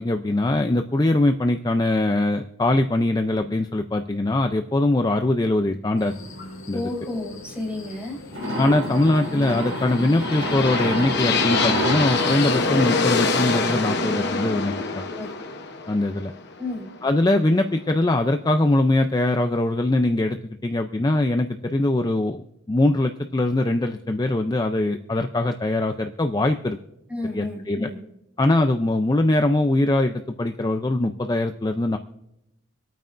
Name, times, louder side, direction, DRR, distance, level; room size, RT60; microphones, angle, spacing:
voice 1, 0.0-6.1 6.7-6.8 8.6-15.1 15.9-16.3 17.0-26.8 27.3-27.9 28.4-32.0, left 2 dB, 20° left, 6 dB, 0.4 m, -22 dB
sound 1, 6.0-11.7, left 2 dB, 75° left, 2.1 m, -43 dB
voice 2, 6.7-8.2 14.7-15.3 16.6-16.9 27.1-28.0, left 2 dB, 5° right, -2 dB, 3.5 m, -32 dB
sound 2, 8.3-13.7, equal, 60° right, 4.6 m, -29 dB
sound 3, 9.5-17.5, left 4 dB, 55° left, 0.9 m, -25 dB
25.5 x 9.0 x 2.5 m, 0.86 s
head